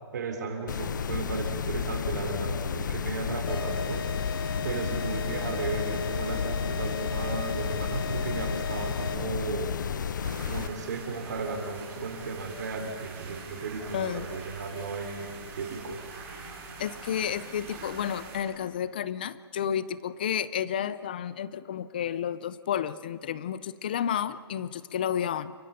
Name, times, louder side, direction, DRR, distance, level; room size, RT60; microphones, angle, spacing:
voice 1, 0.1-4.1 4.6-9.7 10.5-15.3 15.6-16.0, right 4 dB, 45° right, 4 dB, 3.2 m, -35 dB
sound 1, 0.7-10.7, left 7 dB, 45° left, 0.9 m, -32 dB
sound 2, 3.5-9.4, left 4 dB, 65° left, 1.6 m, -38 dB
sound 3, 10.2-18.4, right 4 dB, 10° right, 3.1 m, -44 dB
voice 2, 13.9-14.3 16.8-25.5, left 9 dB, 20° left, 17 dB, 0.5 m, -31 dB
29.5 x 16.5 x 6.7 m, 2.4 s
hypercardioid pair, 175°, 14 cm